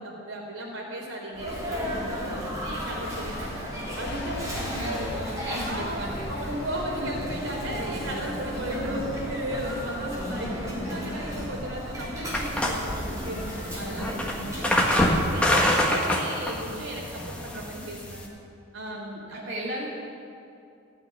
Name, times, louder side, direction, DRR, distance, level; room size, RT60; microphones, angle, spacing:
voice 1, 0.0-3.6 4.0-5.1 5.6-6.0 6.2-14.1 14.4-18.3 18.7-19.5, right 1 dB, 90° right, -1 dB, 4.0 m, -35 dB
Sneeze, 1.3-15.1, equal, 15° right, 3.7 m, -34 dB
sound 1, 4.0-14.0, left 1 dB, 55° left, 1.4 m, -41 dB
voice 2, 4.2-6.4 7.0-7.1 13.9-14.4 18.9-19.9, equal, 55° right, -5 dB, 2.5 m, -37 dB
sound 2, 12.3-18.3, left 1 dB, 5° left, 1.6 m, -26 dB
15.0 x 9.0 x 9.7 m, 2.5 s
head